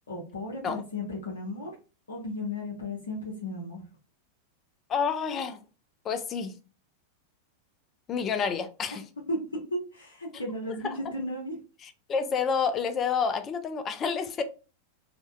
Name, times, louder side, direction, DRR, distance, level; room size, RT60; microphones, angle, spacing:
voice 1, 0.1-1.7 2.1-3.8 8.9-9.0 9.3-9.4 9.9-11.6, left 1 dB, 70° left, 0.6 m, -35 dB
voice 2, 4.9-5.6 6.0-6.6 8.1-9.0 10.8-11.0 11.8-14.4, left 6 dB, 25° left, 0.3 m, -29 dB
2.5 x 2.0 x 2.4 m
figure-of-eight pair, 90°, 0 cm